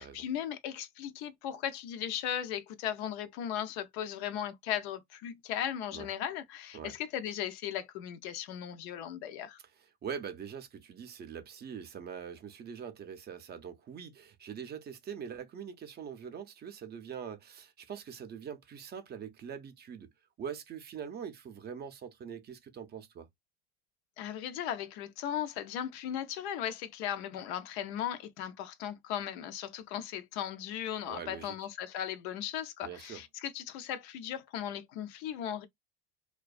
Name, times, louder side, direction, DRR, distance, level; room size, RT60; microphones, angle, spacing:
voice 1, 0.0-9.6 24.2-35.7, left 10 dB, 80° left, 0.5 m, -37 dB
voice 2, 9.8-20.1 20.4-23.3 31.1-31.6 32.8-33.2, right 7 dB, 30° right, 0.5 m, -43 dB
2.4 x 2.2 x 2.3 m
supercardioid pair, 95°, 33 cm